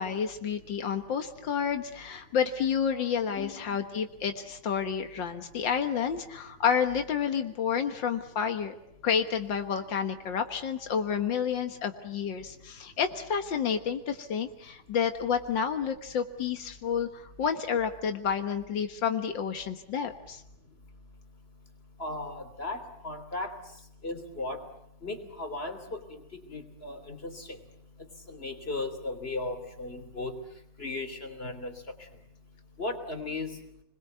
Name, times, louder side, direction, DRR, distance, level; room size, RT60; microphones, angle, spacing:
voice 1, 0.0-8.8 9.0-20.4, left 7 dB, 85° left, 6 dB, 2.1 m, -30 dB
voice 2, 22.0-23.6 24.0-24.6 25.0-27.6 28.3-30.4 30.8-31.7 32.8-33.7, left 2 dB, 30° left, 6 dB, 3.5 m, -36 dB
29.5 x 21.5 x 8.0 m, 0.80 s
omnidirectional pair, 2.0 m